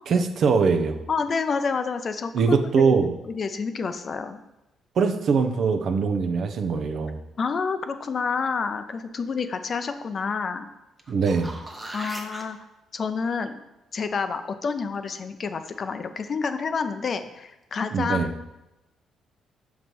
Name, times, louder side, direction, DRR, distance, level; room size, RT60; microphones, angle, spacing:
voice 1, 0.1-1.0 2.3-3.1 5.0-7.2 11.1-11.5 17.9-18.3, right 5 dB, 60° right, 7 dB, 0.5 m, -22 dB
voice 2, 1.1-2.9 3.3-4.4 7.4-10.7 11.9-12.6 12.9-13.6 13.9-18.5, left 5 dB, 45° left, 9 dB, 0.5 m, -29 dB
sound 1, 11.0-12.4 17.2-17.3, right 1 dB, 15° right, 0.8 m, -38 dB
6.0 x 3.2 x 5.2 m, 0.96 s
cardioid pair, 90°, 0 cm